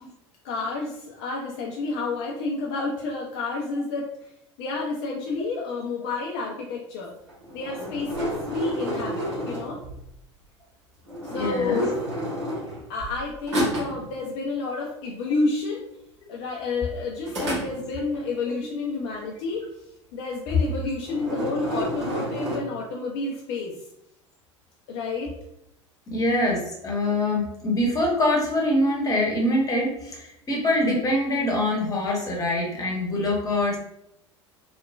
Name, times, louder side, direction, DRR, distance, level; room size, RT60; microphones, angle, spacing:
voice 1, 0.4-4.0 4.6-7.1 7.5-9.8 11.3-11.9 12.9-15.8 16.3-19.6 20.1-23.7 24.9-25.3, left 3 dB, 50° left, -2 dB, 0.5 m, -30 dB
sound 1, 7.3-10.1 11.1-13.2 13.5-14.1 17.3-18.2 20.5-20.7 21.0-22.6, equal, 70° right, 1.1 m, -30 dB
voice 2, 11.3-11.9 18.5-18.6 26.1-33.8, left 1 dB, 20° left, -1 dB, 0.9 m, -24 dB
3.0 x 2.1 x 2.3 m, 0.79 s
figure-of-eight pair, 75°, 16 cm